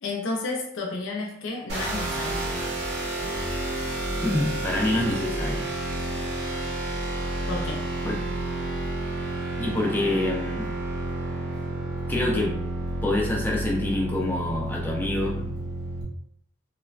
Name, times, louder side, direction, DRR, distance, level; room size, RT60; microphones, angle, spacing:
voice 1, 0.0-2.4 7.5-7.9, left 3 dB, 80° left, 0 dB, 0.5 m, -31 dB
sound 1, 1.7-16.0, right 2 dB, 55° right, 0.8 m, -30 dB
voice 2, 4.2-5.7 8.0-8.2 9.6-10.7 12.1-12.5 13.0-15.6, left 2 dB, 10° left, -2 dB, 0.3 m, -26 dB
3.0 x 2.0 x 2.4 m, 0.73 s
head